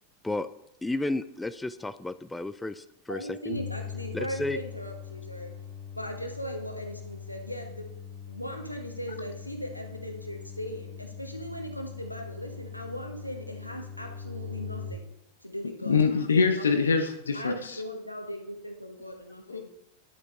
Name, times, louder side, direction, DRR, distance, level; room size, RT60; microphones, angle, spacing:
voice 1, 0.8-3.6 4.1-4.6, left 2 dB, 5° left, 13 dB, 0.3 m, -32 dB
voice 2, 3.1-5.5 6.0-7.9 8.3-15.1 15.4-16.0 16.5-16.9 17.3-19.7, equal, 90° left, 4 dB, 1.1 m, -38 dB
sound 1, 3.5-14.9, left 7 dB, 60° right, 3.0 m, -41 dB
voice 3, 15.9-17.5 19.5-19.7, left 5 dB, 70° left, 7 dB, 0.6 m, -24 dB
11.0 x 8.0 x 2.5 m, 0.83 s
figure-of-eight pair, 90°, 0 cm